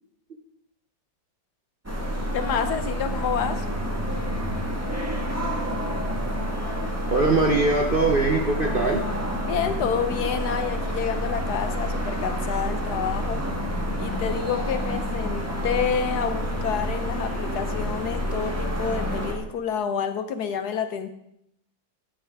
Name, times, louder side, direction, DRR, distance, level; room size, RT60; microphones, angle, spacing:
sound 1, 1.8-19.3, equal, 10° right, 1.3 m, -28 dB
voice 1, 2.3-3.7 9.5-13.4 14.0-21.1, left 7 dB, 65° left, 9 dB, 1.2 m, -28 dB
voice 2, 6.7-9.1, right 3 dB, 45° right, 2 dB, 0.7 m, -22 dB
13.5 x 9.1 x 3.5 m, 0.74 s
omnidirectional pair, 2.0 m